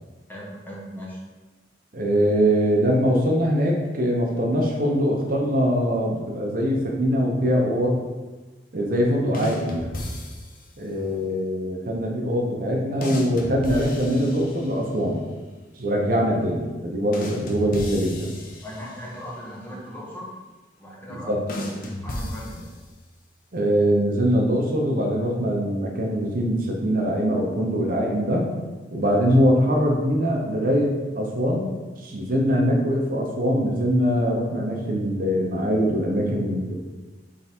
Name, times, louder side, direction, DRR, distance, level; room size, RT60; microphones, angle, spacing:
voice 1, 0.3-1.2 18.6-20.3 20.8-22.7 29.5-29.6, equal, 10° left, -5 dB, 1.0 m, -38 dB
voice 2, 1.9-8.0 8.7-10.0 10.8-15.2 15.8-18.3 21.1-21.4 23.5-28.5 28.9-31.7 32.0-36.7, equal, 50° right, 0 dB, 0.7 m, -22 dB
sound 1, 9.3-10.8 13.0-15.0 17.1-19.3 21.5-23.1, left 1 dB, 50° left, 0.7 m, -34 dB
3.7 x 3.4 x 4.3 m, 1.2 s
head